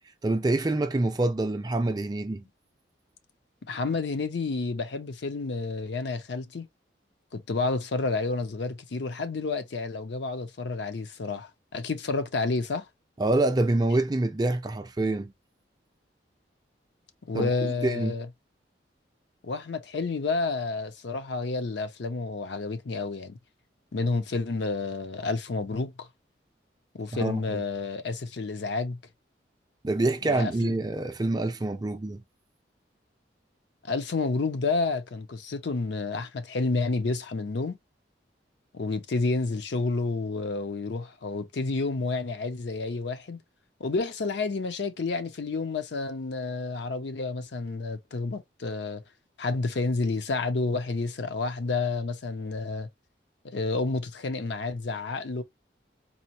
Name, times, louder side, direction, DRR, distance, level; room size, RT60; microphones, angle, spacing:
voice 1, 0.2-2.4 13.2-15.3 17.3-17.5 17.8-18.1 27.2-27.6 29.8-32.2, right 2 dB, 20° right, 0.4 m, -26 dB
voice 2, 3.6-6.7 7.3-12.9 17.3-18.3 19.4-23.4 23.9-26.1 26.9-29.0 30.2-30.7 33.9-37.8 38.7-43.4 43.8-49.0 49.4-52.9 53.4-55.4, left 3 dB, 65° left, 0.5 m, -30 dB
4.1 x 2.0 x 2.8 m
head